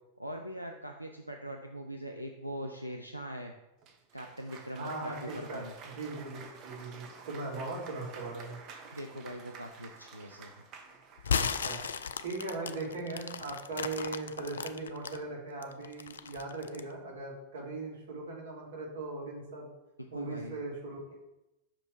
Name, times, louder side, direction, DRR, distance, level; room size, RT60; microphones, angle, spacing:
voice 1, 0.2-3.5 4.1-5.7 8.9-10.7 20.1-20.5, equal, 90° right, 3 dB, 0.5 m, -41 dB
Cheering / Applause, 3.8-11.5, right 5 dB, 35° right, 1.0 m, -50 dB
voice 2, 4.7-8.6 11.3-11.8 12.2-19.7 20.1-21.0, right 3 dB, 60° right, -2 dB, 2.2 m, -39 dB
sound 1, 11.2-15.2 15.6-16.9, left 7 dB, 70° left, 0.4 m, -35 dB
6.0 x 5.1 x 4.6 m, 0.96 s
figure-of-eight pair, 90°, 0 cm